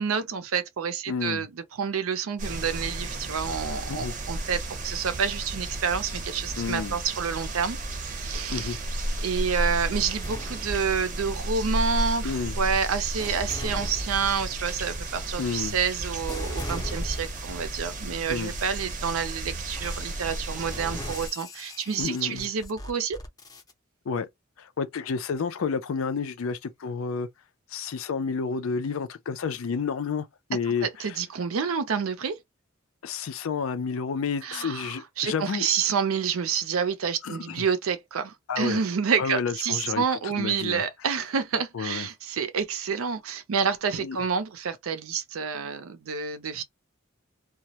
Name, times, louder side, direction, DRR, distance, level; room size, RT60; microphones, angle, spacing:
voice 1, 0.0-7.8 8.1-8.8 9.2-23.2 30.8-32.4 34.4-46.6, right 6 dB, 90° right, 0.5 m, -28 dB
voice 2, 1.1-1.5 3.9-4.1 6.6-7.0 8.5-8.8 12.2-12.6 15.4-15.8 18.3-18.5 22.0-22.5 24.1-24.3 24.6-27.3 27.7-31.2 33.0-35.7 37.2-37.7 38.5-38.8 39.2-40.8 41.7-42.1 43.9-44.2, left 5 dB, 75° left, 0.4 m, -30 dB
sound 1, 2.4-21.3, right 1 dB, 40° right, 0.6 m, -33 dB
sound 2, 9.9-11.5 12.2-17.7 18.3-18.6 19.7-23.7, left 1 dB, 20° left, 0.5 m, -39 dB
2.2 x 2.0 x 2.7 m
head